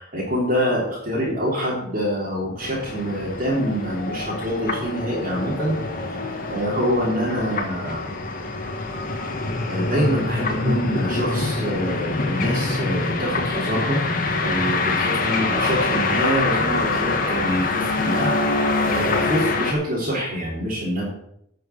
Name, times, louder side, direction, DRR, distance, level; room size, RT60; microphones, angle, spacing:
voice 1, 0.0-5.8 6.5-8.0 9.7-14.0 14.4-18.4 18.8-21.0, equal, 45° right, -6 dB, 3.5 m, -25 dB
sound 1, 2.6-19.7, left 3 dB, 45° left, 1.7 m, -25 dB
10.5 x 6.6 x 7.0 m, 0.76 s
head